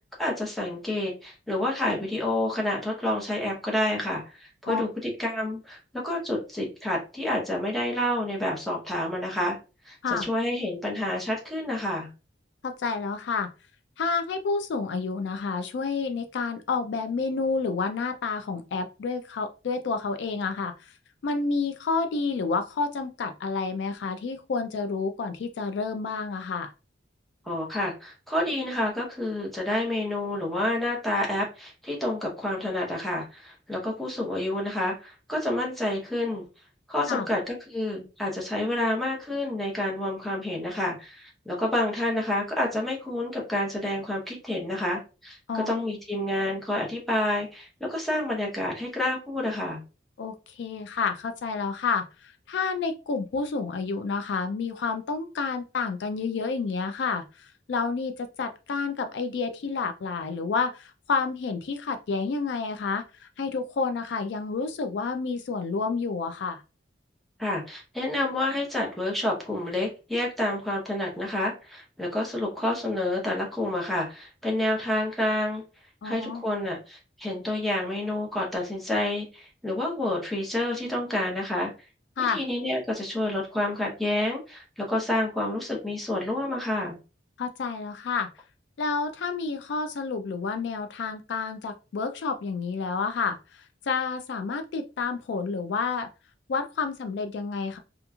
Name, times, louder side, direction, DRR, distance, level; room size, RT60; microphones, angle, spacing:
voice 1, 0.2-9.6 9.9-12.1 27.5-36.4 36.9-49.8 67.4-75.6 76.0-81.7 82.3-87.0, left 1 dB, ahead, -3 dB, 0.7 m, -29 dB
voice 2, 12.6-13.5 14.0-20.9 21.2-26.7 37.1-37.3 45.5-45.8 50.2-66.6 76.0-76.4 82.2-82.4 87.4-88.3 88.8-96.1 96.5-97.8, left 4 dB, 65° left, 8 dB, 0.3 m, -29 dB
2.9 x 2.4 x 2.2 m, 0.32 s
head